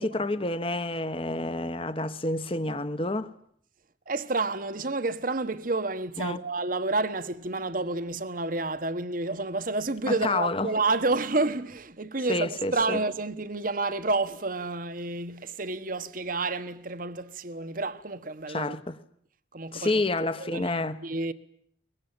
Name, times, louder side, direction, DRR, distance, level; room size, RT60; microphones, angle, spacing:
voice 1, 0.0-3.3 6.2-6.4 10.1-10.7 12.3-13.0 18.5-19.0 19.7-21.0, left 2 dB, 30° left, 1.2 m, -29 dB
voice 2, 4.1-18.7 19.5-20.0 20.4-20.7 21.0-21.3, right 3 dB, 45° right, 1.3 m, -29 dB
23.0 x 22.0 x 9.0 m
head